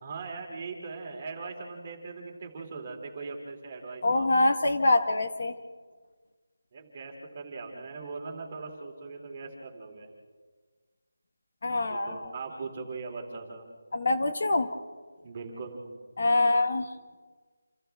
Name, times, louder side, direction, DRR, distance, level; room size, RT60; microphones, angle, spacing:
voice 1, 0.0-4.5 6.7-10.1 11.9-13.6 15.2-15.9, right 4 dB, 20° right, 1 dB, 2.6 m, -40 dB
voice 2, 4.0-5.6 11.6-12.3 13.9-14.7 16.2-16.9, left 2 dB, 40° left, 7 dB, 1.2 m, -25 dB
28.5 x 28.0 x 3.5 m, 1.5 s
figure-of-eight pair, 175°, 0 cm